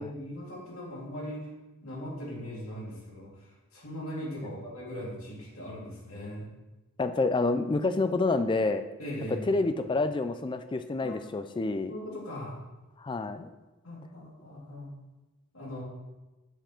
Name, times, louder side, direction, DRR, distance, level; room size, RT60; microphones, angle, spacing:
voice 1, 0.0-1.5 1.8-6.5 9.0-9.6 11.0-11.2 11.9-12.6 13.8-14.9 15.5-15.8, equal, 70° left, -5 dB, 2.6 m, -39 dB
voice 2, 7.0-8.8 9.5-11.9 13.0-13.5, left 3 dB, 20° left, 10 dB, 0.3 m, -28 dB
7.9 x 4.4 x 4.4 m, 1.1 s
head